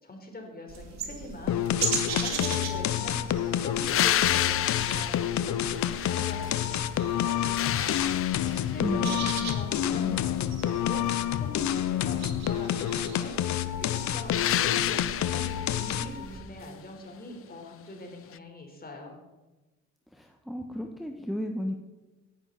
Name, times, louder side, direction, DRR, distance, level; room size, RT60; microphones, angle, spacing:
voice 1, 0.0-1.6 2.1-6.8 7.1-8.0 8.7-10.3 10.6-11.1 11.3-13.3 13.8-19.2, left 1 dB, 30° left, 2 dB, 4.4 m, -43 dB
sound 1, 0.7-16.4, right 4 dB, 60° right, 2.9 m, -39 dB
sound 2, 1.5-16.3, left 11 dB, 65° left, 0.9 m, -29 dB
sound 3, 3.9-6.8 7.2-8.9 14.3-15.8 18.3-18.4, left 11 dB, 45° left, 0.5 m, -30 dB
voice 2, 8.8-9.5 9.9-10.2 20.1-21.7, equal, ahead, 2 dB, 1.4 m, -34 dB
17.5 x 11.0 x 4.3 m, 1.1 s
supercardioid pair, 75°, 31 cm